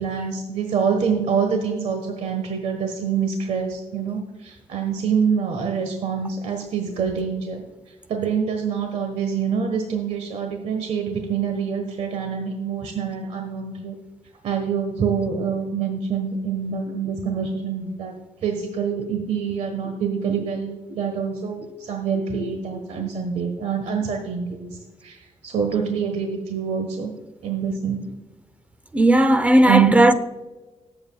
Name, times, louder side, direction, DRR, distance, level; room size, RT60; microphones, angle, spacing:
voice 1, 0.0-7.6 8.1-13.9 14.4-18.1 18.4-27.1 27.4-28.0 29.6-30.1, right 6 dB, 75° right, 1.4 m, -25 dB
voice 2, 28.9-30.1, right 1 dB, 10° right, 0.7 m, -15 dB
19.0 x 7.8 x 2.4 m
cardioid pair, 105°, 11 cm